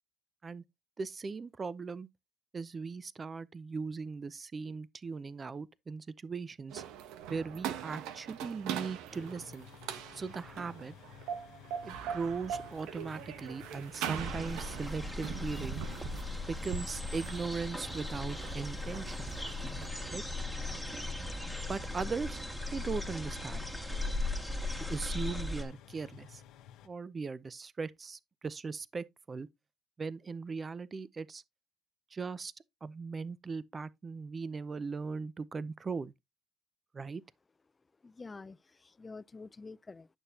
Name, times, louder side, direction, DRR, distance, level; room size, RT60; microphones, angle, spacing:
voice 1, 1.0-2.1 2.5-6.8 7.3-9.7 10.1-10.9 11.8-15.8 16.5-19.3 20.1-20.2 21.7-22.4 22.7-23.8 24.9-26.4 26.8-29.5 30.0-31.4 32.1-32.5 32.8-36.1 36.9-37.2, right 4 dB, 30° right, 0.6 m, -39 dB
sound 1, 6.7-19.9, right 9 dB, 90° right, 1.0 m, -42 dB
sound 2, 9.1-26.9, left 9 dB, 80° left, 1.0 m, -54 dB
sound 3, 14.2-25.6, left 2 dB, 5° right, 2.0 m, -38 dB
voice 2, 38.0-40.1, left 3 dB, 25° left, 0.4 m, -48 dB
11.0 x 6.8 x 2.8 m
cardioid pair, 100°, 0 cm